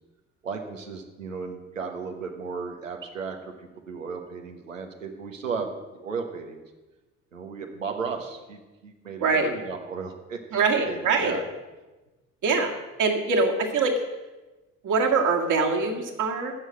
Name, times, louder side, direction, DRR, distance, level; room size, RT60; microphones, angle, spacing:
voice 1, 0.4-6.6 7.3-11.4, right 5 dB, 85° right, 4 dB, 1.3 m, -35 dB
voice 2, 9.2-9.5 10.5-11.4 12.4-12.7 13.0-13.9 14.8-16.5, right 4 dB, 50° right, 2 dB, 2.1 m, -23 dB
15.0 x 6.5 x 7.7 m, 1.1 s
figure-of-eight pair, 50°, 38 cm